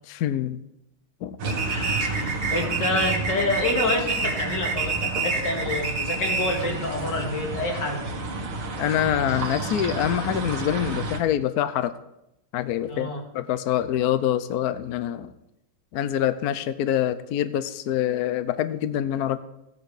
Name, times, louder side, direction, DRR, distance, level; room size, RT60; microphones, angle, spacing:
voice 1, 0.1-0.6 1.2-1.4 8.8-12.0 12.5-15.3 15.9-19.4, left 11 dB, 75° left, 12 dB, 0.9 m, -25 dB
sound 1, 1.4-11.2, right 2 dB, 80° right, 2.4 m, -31 dB
sound 2, 1.5-6.7, right 4 dB, 40° right, 1.8 m, -28 dB
voice 2, 1.7-8.0 12.9-13.2, left 2 dB, 55° left, 1 dB, 2.8 m, -28 dB
15.0 x 9.1 x 4.9 m, 0.87 s
omnidirectional pair, 2.3 m